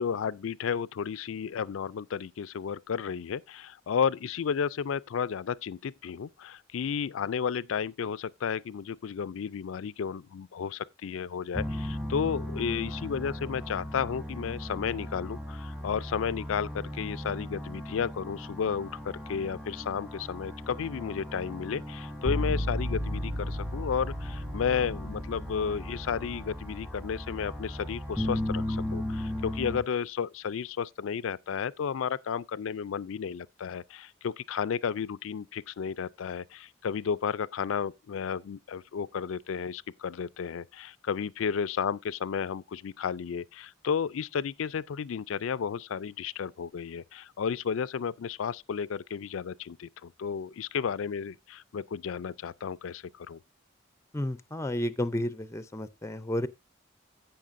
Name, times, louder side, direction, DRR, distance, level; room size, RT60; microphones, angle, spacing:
voice 1, 0.0-53.4, left 7 dB, 80° left, 0.4 m, -33 dB
sound 1, 11.5-29.8, equal, 5° right, 1.1 m, -35 dB
voice 2, 54.1-56.5, left 1 dB, 15° left, 0.5 m, -31 dB
16.0 x 5.7 x 2.6 m
head